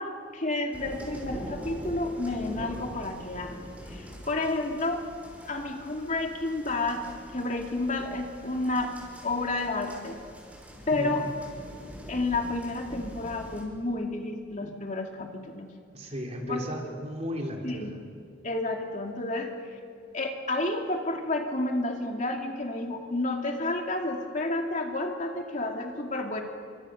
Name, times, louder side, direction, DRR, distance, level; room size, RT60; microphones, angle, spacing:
voice 1, 0.0-5.0 5.5-8.9 9.2-10.2 10.9-11.3 12.1-15.7 16.5-16.9 17.6-18.0 18.4-19.5 20.1-26.4, left 2 dB, 40° left, 2 dB, 2.5 m, -31 dB
sound 1, 0.7-13.6, equal, 10° right, 5.4 m, -44 dB
voice 2, 15.9-17.9, equal, 35° right, 1 dB, 3.7 m, -35 dB
29.5 x 25.0 x 6.5 m, 2.3 s
head